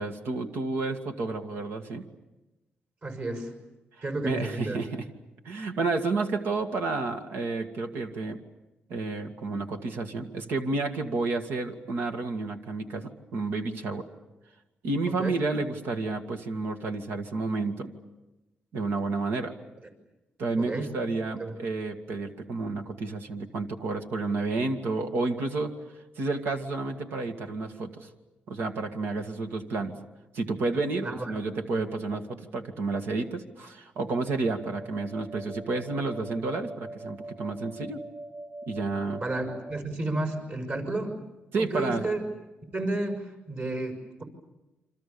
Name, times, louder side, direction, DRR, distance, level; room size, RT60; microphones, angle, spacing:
voice 1, 0.0-2.0 4.2-5.0 5.5-8.4 8.9-14.1 14.8-17.9 18.7-19.5 20.4-25.7 26.2-28.1 28.5-29.9 30.3-38.0 38.7-39.2 41.5-42.0, right 3 dB, 85° right, 5 dB, 2.1 m, -30 dB
voice 2, 3.0-3.5 4.0-4.8 15.2-15.4 20.6-21.0 21.4-21.6 31.0-31.4 39.2-41.2 41.6-42.2 42.7-44.2, right 2 dB, 45° right, 5 dB, 6.1 m, -32 dB
sound 1, 34.4-39.8, right 2 dB, 15° right, 1.0 m, -42 dB
28.0 x 26.0 x 7.0 m, 1.0 s
cardioid pair, 105°, 4 cm